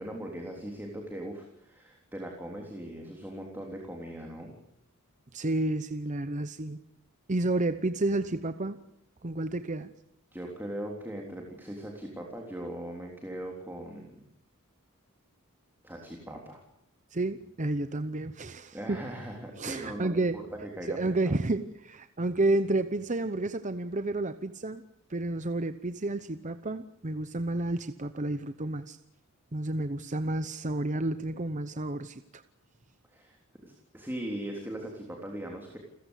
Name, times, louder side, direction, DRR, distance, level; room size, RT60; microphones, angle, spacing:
voice 1, 0.0-4.5 10.3-14.2 15.8-16.6 18.7-21.3 33.1-35.8, right 1 dB, 10° right, 1 dB, 3.5 m, -40 dB
voice 2, 5.3-6.8 7.3-8.8 9.2-9.9 17.1-19.1 19.6-20.4 20.9-24.8 25.1-29.0 29.5-32.4, right 2 dB, 35° right, 11 dB, 0.8 m, -30 dB
29.5 x 15.5 x 8.2 m, 0.80 s
head